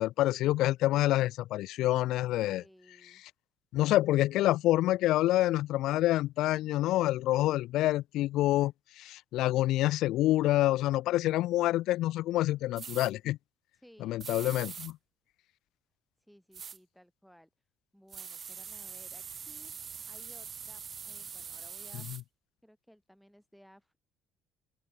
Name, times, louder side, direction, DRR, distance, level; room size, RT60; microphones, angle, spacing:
voice 1, 0.0-2.6 3.7-13.4 14.0-15.0, left 15 dB, 70° left, 0.3 m, -27 dB
voice 2, 2.5-3.2 13.7-14.2 16.2-17.5 17.9-19.8 20.0-22.1 22.6-24.0, equal, ahead, 7.8 m, -59 dB
sound 1, 12.8-13.1 14.2-14.9 16.5-16.8 18.1-22.2, right 7 dB, 40° right, 1.1 m, -43 dB
open air
cardioid pair, 110°, 0 cm